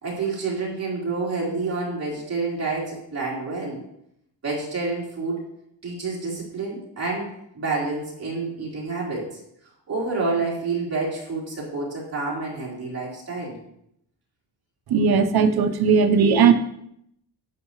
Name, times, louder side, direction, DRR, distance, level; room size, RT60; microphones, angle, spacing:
voice 1, 0.0-3.8 4.4-5.4 5.8-9.4 9.9-13.5, right 3 dB, 30° right, -5 dB, 3.8 m, -28 dB
voice 2, 14.9-16.5, right 6 dB, 55° right, 8 dB, 0.8 m, -17 dB
11.5 x 8.6 x 3.1 m, 0.75 s
wide cardioid pair, 160°, 45 cm